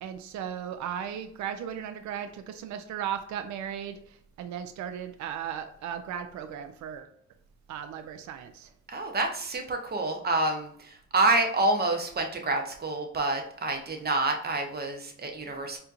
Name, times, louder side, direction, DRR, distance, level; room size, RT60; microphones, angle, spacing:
voice 1, 0.0-7.1 7.7-8.7, right 9 dB, 70° right, 8 dB, 0.5 m, -36 dB
voice 2, 8.9-15.8, right 2 dB, 30° right, 4 dB, 0.7 m, -28 dB
4.2 x 2.7 x 2.5 m, 0.64 s
cardioid pair, 90°, 30 cm